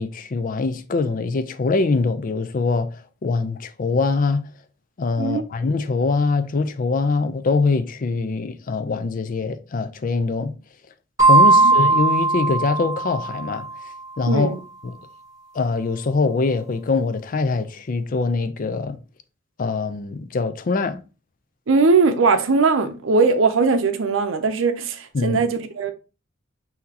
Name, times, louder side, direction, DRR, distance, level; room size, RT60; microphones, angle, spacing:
voice 1, 0.0-2.9 3.2-4.5 5.0-10.5 11.3-13.7 14.2-14.5 14.8-14.9 15.5-19.0 19.6-21.0 25.1-25.4, left 3 dB, 45° left, 0.4 m, -23 dB
sound 1, 11.2-13.7, right 3 dB, 15° right, 1.3 m, -17 dB
voice 2, 14.3-14.6 21.7-25.9, right 4 dB, 80° right, 0.6 m, -19 dB
5.9 x 2.8 x 2.8 m
head